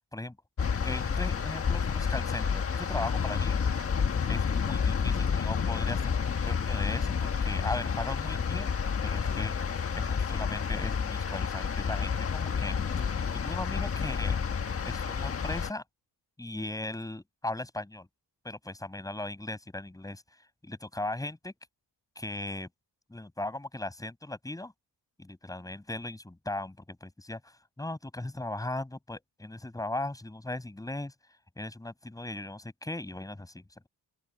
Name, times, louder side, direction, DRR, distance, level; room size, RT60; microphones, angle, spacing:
sound 1, 0.6-15.7, left 6 dB, 35° left, 1.5 m, -30 dB
voice 1, 0.8-3.6 4.3-6.1 6.5-7.1 7.4-8.7 9.0-13.1 13.4-14.4 14.8-15.8 16.4-18.1 18.4-20.2 20.6-21.5 22.2-22.7 23.1-24.7 25.2-31.1 31.6-33.9, left 2 dB, 10° left, 6.0 m, -38 dB
open air
wide cardioid pair, 160°, 39 cm